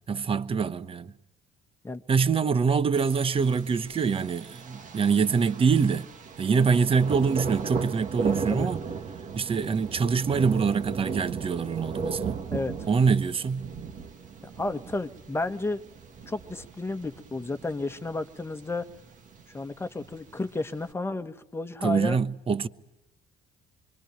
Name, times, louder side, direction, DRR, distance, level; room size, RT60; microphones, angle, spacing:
voice 1, 0.1-1.1 2.1-6.1 6.4-8.8 9.3-12.4 12.9-13.7 21.8-22.7, right 5 dB, 35° right, 1.1 m, -24 dB
Thunder, 2.9-20.9, right 5 dB, 50° right, 1.9 m, -37 dB
voice 2, 12.5-12.9 14.6-15.8 16.3-18.9 19.5-22.2, left 2 dB, 15° left, 1.4 m, -32 dB
27.5 x 23.5 x 9.2 m
cardioid pair, 110°, 17 cm